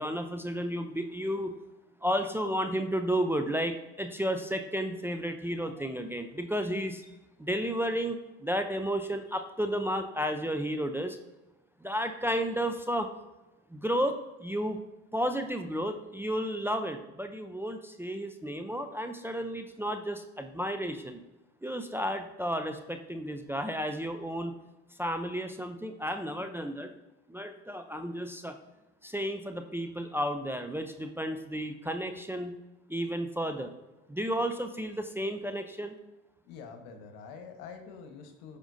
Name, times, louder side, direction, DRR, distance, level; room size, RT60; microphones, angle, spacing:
voice 1, 0.0-1.5 2.0-7.1 7.4-11.2 11.8-13.1 13.7-14.8 15.1-21.2 21.6-24.5 25.0-26.9 27.3-28.6 29.0-32.6 32.9-33.7 34.1-35.9, equal, 5° right, 6 dB, 0.6 m, -32 dB
voice 2, 36.4-38.6, left 5 dB, 70° left, 6 dB, 1.3 m, -46 dB
13.0 x 5.1 x 2.7 m, 1.0 s
hypercardioid pair, 65°, 39 cm